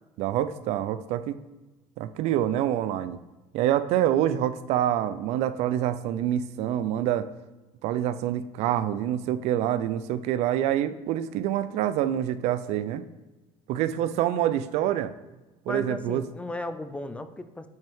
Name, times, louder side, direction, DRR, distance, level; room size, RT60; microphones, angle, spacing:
voice 1, 0.2-1.4 2.0-3.2 3.5-7.3 7.8-13.0 13.7-15.1 15.7-16.2, right 11 dB, 65° right, 14 dB, 0.4 m, -26 dB
voice 2, 15.7-17.7, left 2 dB, 10° left, 10 dB, 0.3 m, -35 dB
8.9 x 5.5 x 3.6 m, 1.1 s
cardioid pair, 155°, 12 cm